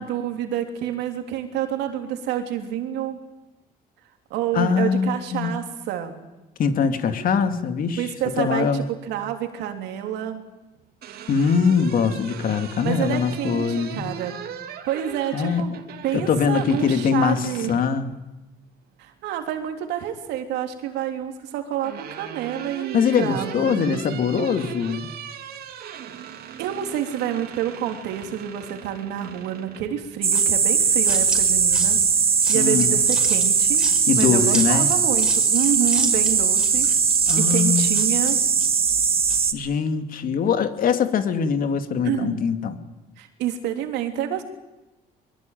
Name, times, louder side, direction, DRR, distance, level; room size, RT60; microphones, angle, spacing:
voice 1, 0.0-3.2 4.3-6.2 8.0-10.4 12.8-14.3 14.9-15.7 16.0-17.7 19.0-24.2 26.6-32.0 32.5-33.8 34.1-36.9 37.3-38.4 42.0-42.4 43.2-44.4, right 10 dB, 90° right, 5 dB, 3.4 m, -28 dB
voice 2, 4.5-5.6 6.6-8.1 8.4-8.8 11.3-14.1 15.3-15.7 16.1-18.1 22.9-25.1 32.5-33.0 34.1-34.9 37.3-38.0 39.5-42.8, left 6 dB, 55° left, 8 dB, 2.6 m, -22 dB
sound 1, 10.7-18.0 19.4-20.1 21.3-29.9, right 8 dB, 65° right, 2.9 m, -39 dB
sound 2, 30.2-39.5, right 6 dB, 35° right, 2.1 m, -20 dB
sound 3, 30.3-39.5, right 1 dB, 5° right, 5.6 m, -36 dB
23.5 x 22.5 x 9.3 m, 1.0 s
cardioid pair, 110°, 17 cm